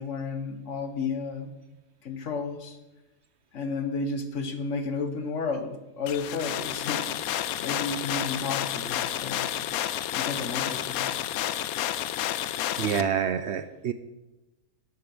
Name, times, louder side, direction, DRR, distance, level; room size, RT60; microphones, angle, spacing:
voice 1, 0.0-1.5 2.0-2.8 3.5-7.1 7.6-9.5 10.1-11.1, left 4 dB, 60° left, 8 dB, 1.4 m, -32 dB
sound 1, 6.1-13.0, left 11 dB, 85° left, 1.1 m, -30 dB
voice 2, 12.8-13.9, right 8 dB, 65° right, 11 dB, 0.8 m, -27 dB
12.0 x 7.6 x 6.2 m, 1.1 s
omnidirectional pair, 1.5 m